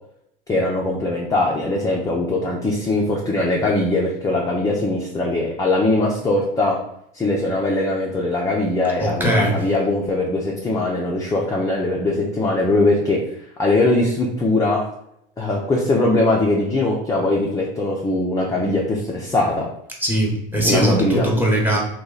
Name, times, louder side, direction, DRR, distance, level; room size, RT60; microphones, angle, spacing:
voice 1, 0.5-6.8 7.1-13.2 13.6-14.8 15.4-19.7 20.6-21.3, left 2 dB, 10° left, -3 dB, 0.5 m, -21 dB
voice 2, 9.0-9.6 20.0-21.8, right 1 dB, 5° right, -1 dB, 1.0 m, -20 dB
3.0 x 2.3 x 3.8 m, 0.75 s
hypercardioid pair, 85°, 29 cm